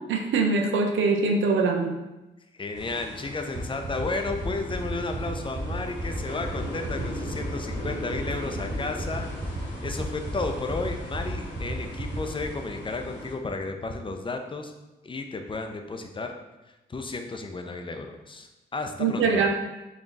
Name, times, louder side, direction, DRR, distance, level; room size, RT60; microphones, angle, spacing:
voice 1, 0.1-2.0 19.0-19.5, right 4 dB, 75° right, 3 dB, 0.5 m, -23 dB
voice 2, 2.5-9.3 9.8-14.7 15.0-16.3 16.9-19.5, left 3 dB, 25° left, 5 dB, 0.5 m, -33 dB
sound 1, 2.7-13.3, left 1 dB, 70° left, 1.3 m, -39 dB
sound 2, 3.5-12.4, right 3 dB, 35° right, 0.8 m, -33 dB
3.7 x 2.3 x 3.9 m, 1.0 s
supercardioid pair, 55°, 20 cm